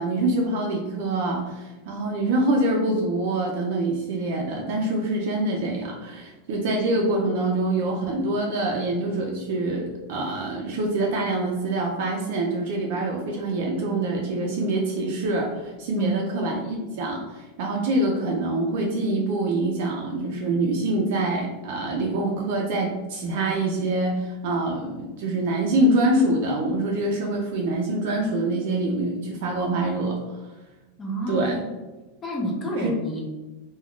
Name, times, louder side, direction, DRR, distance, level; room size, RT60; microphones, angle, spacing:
voice 1, 0.0-30.4 31.3-31.6 32.8-32.9, right 2 dB, 60° right, 0 dB, 0.5 m, -25 dB
voice 2, 31.0-31.6 32.2-33.2, right 1 dB, 15° left, -2 dB, 0.6 m, -28 dB
2.3 x 2.2 x 3.6 m, 1.1 s
supercardioid pair, 160°, 0 cm